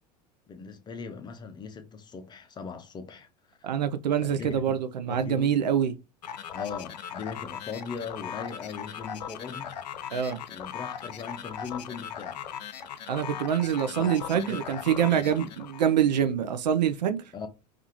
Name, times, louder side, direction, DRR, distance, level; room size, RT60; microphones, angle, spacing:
voice 1, 0.5-3.7 4.2-4.5 5.1-5.5 6.5-9.8 10.5-12.4 13.9-14.1 14.5-14.6 15.2-15.5 17.3-17.5, left 5 dB, 20° left, 0.5 m, -39 dB
voice 2, 3.6-5.9 10.1-10.4 13.1-17.2, right 9 dB, 80° right, 0.4 m, -25 dB
sound 1, 6.2-16.0, left 8 dB, 80° left, 0.4 m, -39 dB
2.5 x 2.4 x 2.7 m
hypercardioid pair, 85°, 21 cm